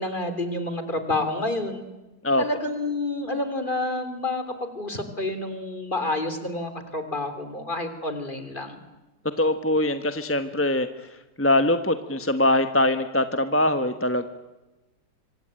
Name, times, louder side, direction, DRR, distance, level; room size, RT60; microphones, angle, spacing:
voice 1, 0.0-1.8 2.4-8.8, left 2 dB, 25° left, 9 dB, 3.5 m, -29 dB
voice 2, 9.4-10.9 11.4-14.2, left 1 dB, 10° left, 9 dB, 0.9 m, -22 dB
25.5 x 25.0 x 9.0 m, 1.1 s
omnidirectional pair, 2.0 m